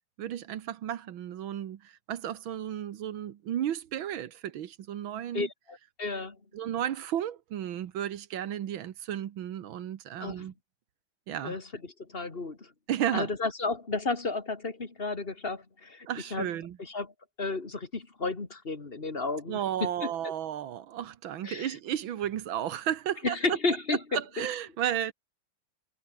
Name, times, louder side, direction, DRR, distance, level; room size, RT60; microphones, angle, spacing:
voice 1, 0.2-5.5 6.5-10.5 11.3-11.6 12.9-13.3 16.1-16.8 19.5-23.4 24.1-25.1, right 10 dB, 85° right, 1.9 m, -33 dB
voice 2, 5.3-6.4 10.2-10.5 11.4-11.6 12.1-12.6 13.1-16.5 16.8-17.1 17.4-20.1 21.4-21.7 23.2-24.5, left 3 dB, 30° left, 2.4 m, -32 dB
omnidirectional pair, 2.1 m